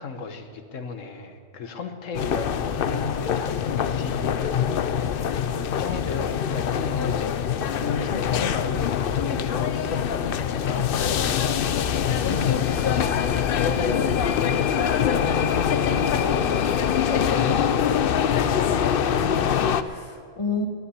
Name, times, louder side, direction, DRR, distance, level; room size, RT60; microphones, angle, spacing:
voice 1, 0.0-10.9 12.9-14.2 14.5-18.4, left 4 dB, 90° left, 6 dB, 1.4 m, -34 dB
sound 1, 2.1-19.8, left 8 dB, 55° left, 0.7 m, -24 dB
voice 2, 19.1-20.7, left 3 dB, 25° left, 3 dB, 1.4 m, -32 dB
11.5 x 9.8 x 9.6 m, 2.2 s
omnidirectional pair, 1.3 m